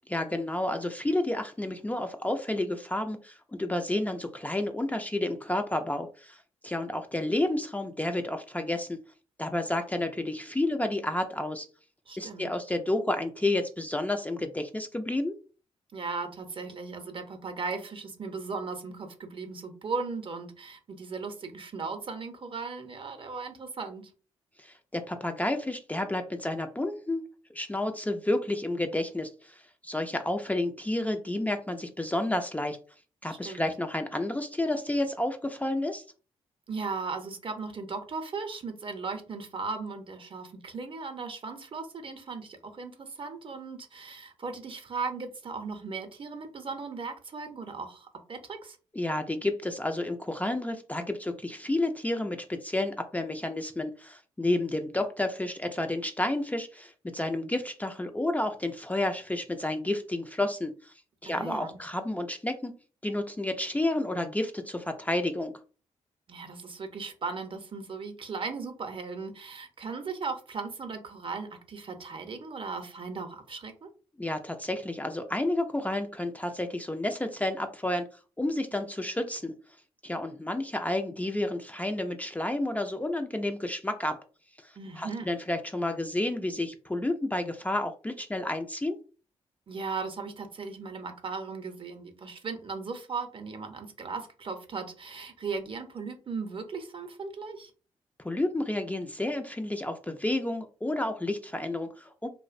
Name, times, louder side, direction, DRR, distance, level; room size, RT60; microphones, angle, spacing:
voice 1, 0.1-9.0 9.4-11.7 12.2-15.3 24.6-27.2 27.5-32.8 33.2-36.0 48.9-60.9 61.2-62.7 63.0-65.5 74.2-78.1 78.4-79.5 80.0-84.2 84.6-89.0 98.2-102.3, left 1 dB, 10° left, 6 dB, 0.3 m, -30 dB
voice 2, 12.1-12.5 15.9-24.1 33.3-33.7 36.7-48.8 61.2-61.8 66.3-73.9 84.8-85.3 89.7-97.7, right 4 dB, 45° right, 6 dB, 0.6 m, -37 dB
2.5 x 2.1 x 2.4 m, 0.37 s
supercardioid pair, 50°, 13 cm